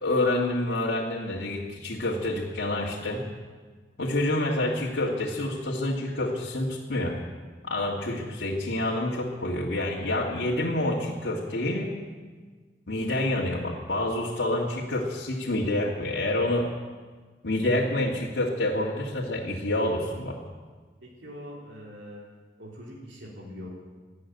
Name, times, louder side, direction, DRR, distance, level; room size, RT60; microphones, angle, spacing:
voice 1, 0.0-3.2 4.0-7.2 7.6-11.9 12.9-16.7 17.4-20.4, left 1 dB, 85° left, -5 dB, 1.9 m, -28 dB
voice 2, 21.0-22.3 22.6-23.7, equal, 85° right, -3 dB, 3.4 m, -43 dB
12.5 x 12.5 x 9.3 m, 1.4 s
head